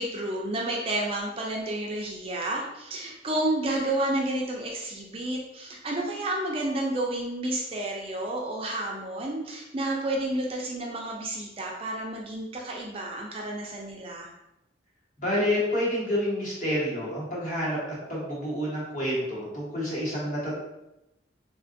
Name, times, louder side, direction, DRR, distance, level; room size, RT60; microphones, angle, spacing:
voice 1, 0.0-14.3, right 1 dB, 30° right, -1 dB, 0.4 m, -30 dB
voice 2, 15.2-17.8 18.1-20.6, equal, 45° left, -6 dB, 1.1 m, -28 dB
3.6 x 2.4 x 2.5 m, 0.90 s
head